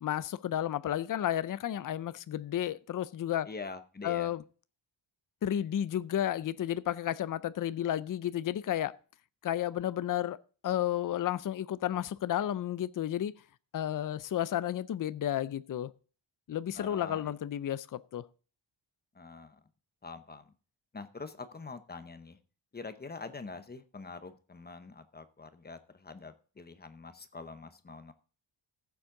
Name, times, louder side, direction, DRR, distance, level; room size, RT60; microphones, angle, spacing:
voice 1, 0.0-3.5 4.0-4.4 5.4-8.9 9.4-10.4 10.6-13.3 13.7-15.9 16.5-18.3, left 11 dB, 45° left, 0.4 m, -32 dB
voice 2, 3.5-4.3 16.8-17.3 19.1-19.6 20.0-20.5 20.9-22.4 22.7-28.1, left 4 dB, 20° left, 0.8 m, -45 dB
15.0 x 7.2 x 3.8 m
wide cardioid pair, 175°, 49 cm